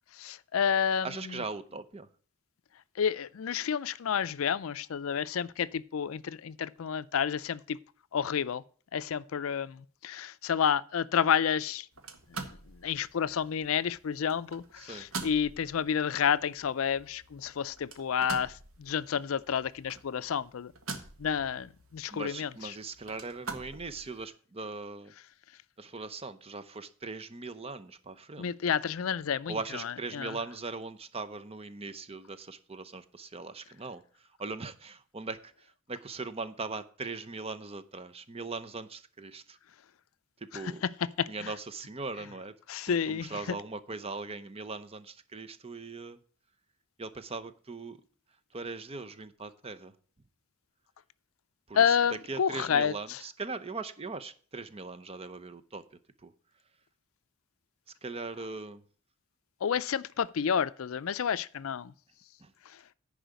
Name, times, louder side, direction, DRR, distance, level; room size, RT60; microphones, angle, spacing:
voice 1, 0.2-1.4 3.0-7.8 8.1-8.6 8.9-11.9 12.5-12.6 12.8-20.7 21.2-22.8 28.4-30.4 40.5-41.5 42.7-43.6 51.7-53.2 59.6-61.9, left 7 dB, 75° left, 0.4 m, -30 dB
voice 2, 1.0-2.1 14.8-15.1 22.1-25.1 25.8-28.5 29.5-34.0 34.4-35.5 35.9-39.6 40.4-40.8 41.3-42.5 42.8-46.2 47.0-48.0 48.5-49.9 51.7-52.0 52.3-55.8 56.2-56.3 58.0-58.8 62.4-62.5, right 3 dB, 30° right, 0.7 m, -40 dB
sound 1, 11.9-24.3, right 4 dB, 80° right, 1.6 m, -46 dB
10.0 x 4.9 x 8.1 m
head